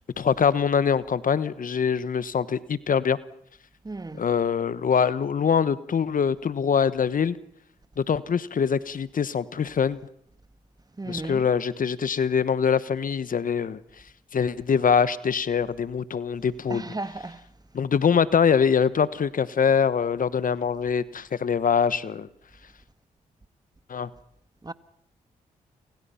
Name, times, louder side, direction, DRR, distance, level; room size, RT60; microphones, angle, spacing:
voice 1, 0.2-3.2 4.2-7.4 8.0-10.0 11.1-13.8 14.3-16.8 17.7-22.3 23.9-24.1, left 7 dB, 55° left, 1.2 m, -23 dB
voice 2, 3.8-4.2 11.0-11.5 16.7-17.5 24.6-24.7, right 2 dB, 25° right, 1.6 m, -35 dB
29.5 x 27.0 x 5.8 m
supercardioid pair, 45°, 16 cm